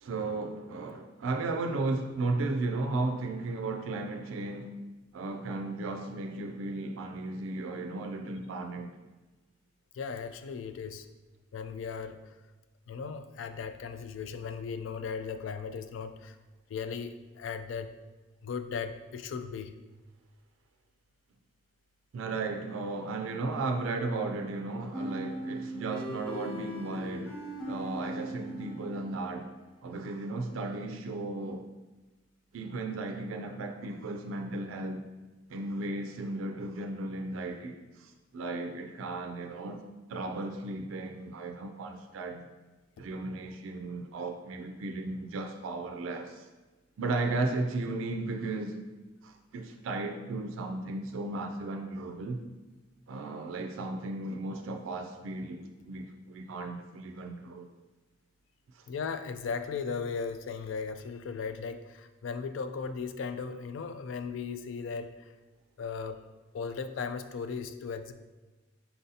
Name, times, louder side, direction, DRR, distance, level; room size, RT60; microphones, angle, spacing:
voice 1, 0.0-4.8 5.1-8.9 22.1-27.4 27.7-29.5 29.8-31.7 32.5-35.1 35.5-39.8 40.1-42.5 43.0-46.5 47.0-48.8 49.2-52.4 53.1-55.6 55.9-57.7 58.7-58.8, right 2 dB, 85° right, 0.4 m, -35 dB
voice 2, 9.9-11.1 11.5-12.2 12.9-16.4 16.7-18.0 18.4-19.8 58.9-65.3 65.8-66.2 66.5-68.1, left 5 dB, 75° left, 0.3 m, -37 dB
sound 1, 24.9-29.6, right 1 dB, ahead, 1.4 m, -39 dB
4.3 x 3.9 x 2.7 m
head